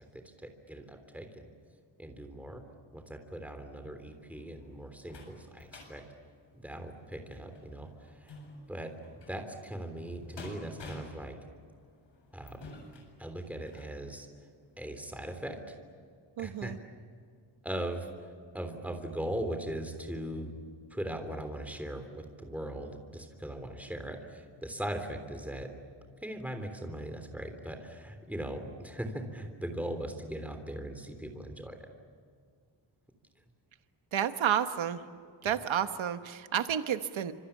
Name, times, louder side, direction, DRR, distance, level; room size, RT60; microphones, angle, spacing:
voice 1, 0.4-1.5 2.0-2.6 2.9-6.0 6.6-7.9 8.1-8.3 8.7-11.3 12.3-12.7 13.2-14.3 14.8-15.7 16.4-16.7 17.6-20.5 20.9-25.7 26.2-31.9, right 1 dB, 5° right, 5 dB, 3.4 m, -39 dB
sound 1, 4.1-14.0 14.5-14.6 15.0-15.1, left 2 dB, 65° left, 7.6 m, -51 dB
voice 2, 16.4-16.8 34.1-35.0 35.4-37.3, right 9 dB, 80° right, 9 dB, 1.3 m, -30 dB
28.5 x 27.0 x 7.3 m, 2.1 s
wide cardioid pair, 170°, 46 cm